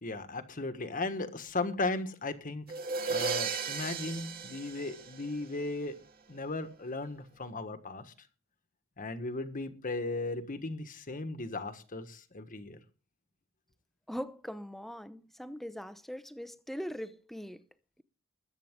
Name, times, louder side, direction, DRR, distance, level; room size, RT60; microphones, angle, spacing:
voice 1, 0.0-2.7 3.1-5.9 6.3-8.1 9.0-12.8, left 2 dB, 40° left, 1.4 m, -36 dB
sound 1, 2.7-5.6, right 5 dB, 50° right, 1.9 m, -35 dB
voice 2, 14.1-17.6, equal, ahead, 0.7 m, -41 dB
21.5 x 8.5 x 3.7 m
head